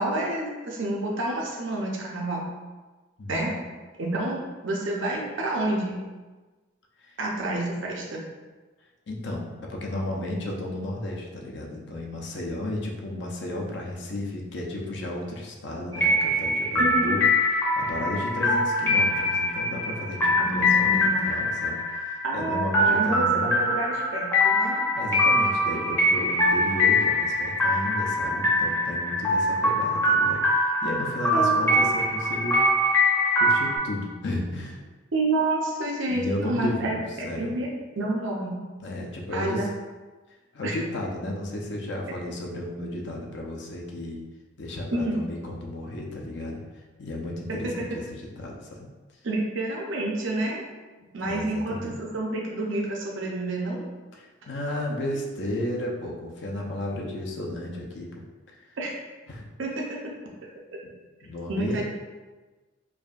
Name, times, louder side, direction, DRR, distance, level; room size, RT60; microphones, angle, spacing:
voice 1, 0.0-2.4 3.3-3.5 4.0-6.0 7.2-8.2 16.8-17.2 20.4-21.3 22.2-24.8 31.3-31.7 35.1-37.7 38.0-38.6 39.3-39.7 40.6-40.8 44.9-45.2 47.5-47.6 49.2-50.6 51.1-53.8 58.8-58.9 59.6-59.8 61.5-61.8, right 2 dB, 65° right, -2 dB, 0.6 m, -28 dB
voice 2, 9.1-23.7 24.9-32.6 33.4-34.8 36.1-37.5 38.8-39.7 40.5-44.2 44.6-46.6 47.0-48.9 51.0-51.9 54.1-58.2 58.5-58.6 59.3-59.5 60.8-60.9 61.2-61.8, left 1 dB, 55° left, -1 dB, 0.5 m, -33 dB
sound 1, 15.9-33.8, left 1 dB, 10° left, 0.7 m, -23 dB
4.7 x 2.6 x 2.4 m, 1.3 s
head